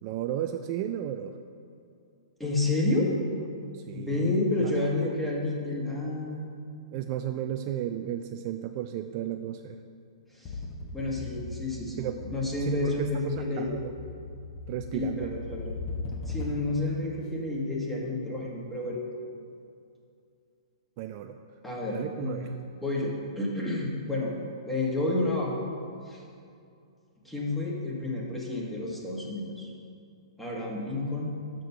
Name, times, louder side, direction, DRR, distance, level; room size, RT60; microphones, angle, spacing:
voice 1, 0.0-1.4 3.7-4.8 6.9-9.8 12.0-12.3 12.5-13.9 14.7-15.3 21.0-21.4 21.9-22.5, right 11 dB, 40° right, 7 dB, 0.3 m, -34 dB
voice 2, 2.4-3.1 3.9-6.5 10.4-10.5 10.9-13.7 14.9-15.7 16.3-19.0 21.6-24.3 24.7-25.6 26.0-26.2 27.2-29.7 30.4-31.3, left 2 dB, 5° left, -4 dB, 1.4 m, -30 dB
sound 1, 10.5-16.8, left 3 dB, 25° left, 1.0 m, -39 dB
6.6 x 6.1 x 5.6 m, 2.4 s
hypercardioid pair, 135°, 3 cm